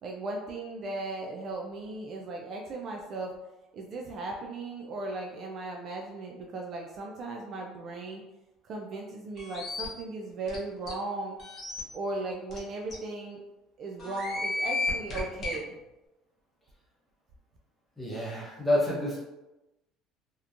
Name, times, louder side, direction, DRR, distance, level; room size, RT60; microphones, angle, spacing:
voice 1, 0.0-3.3 3.7-8.2 8.6-11.4 11.9-13.4 13.8-15.8, right 2 dB, 40° right, 0 dB, 0.3 m, -37 dB
sound 1, 9.4-9.9 10.5-10.6 10.9-11.0 11.4-11.8 12.5-12.6 12.9-13.0 14.0-15.6, left 2 dB, 40° left, 0.7 m, -33 dB
voice 2, 18.0-19.2, left 1 dB, 5° left, -6 dB, 0.8 m, -28 dB
2.8 x 2.1 x 2.4 m, 1.0 s
cardioid pair, 140°, 0 cm